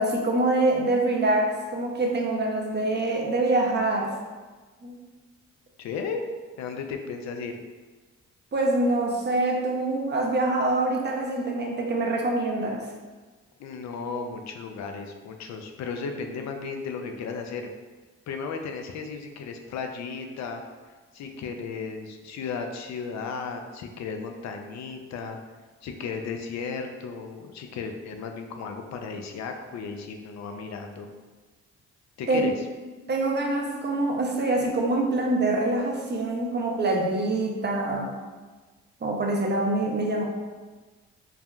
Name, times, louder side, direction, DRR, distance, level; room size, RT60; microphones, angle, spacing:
voice 1, 0.0-4.1 4.8-5.0 8.5-12.8 32.3-32.4 33.1-38.1 39.0-40.2, right 2 dB, 30° right, 0 dB, 0.6 m, -25 dB
voice 2, 5.8-6.3 6.6-7.5 13.6-17.7 18.3-20.6 21.1-25.4 25.8-31.1 32.2-32.5, left 5 dB, 55° left, 5 dB, 0.5 m, -35 dB
3.4 x 2.1 x 2.3 m, 1.3 s
hypercardioid pair, 45°, 32 cm